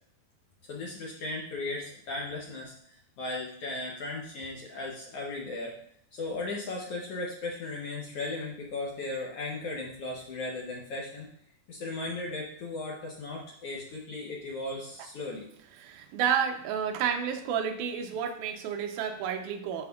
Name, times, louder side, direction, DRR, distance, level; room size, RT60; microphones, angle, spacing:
voice 1, 0.7-5.7 6.1-11.3 11.7-15.5, left 2 dB, 80° left, -2 dB, 1.3 m, -36 dB
voice 2, 15.8-19.9, right 8 dB, 80° right, 6 dB, 2.1 m, -30 dB
10.5 x 4.4 x 2.3 m, 0.70 s
omnidirectional pair, 3.6 m